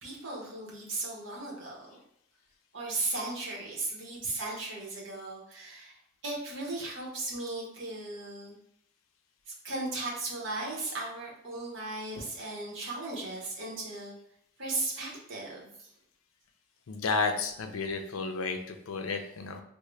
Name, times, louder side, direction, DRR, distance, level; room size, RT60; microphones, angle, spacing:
voice 1, 0.0-2.0 2.7-6.0 6.2-8.6 9.5-14.1 14.6-15.9 19.1-19.2, right 2 dB, 60° right, -3 dB, 1.0 m, -36 dB
voice 2, 16.9-19.6, left 4 dB, 75° left, 6 dB, 0.4 m, -32 dB
3.7 x 2.1 x 3.1 m, 0.74 s
head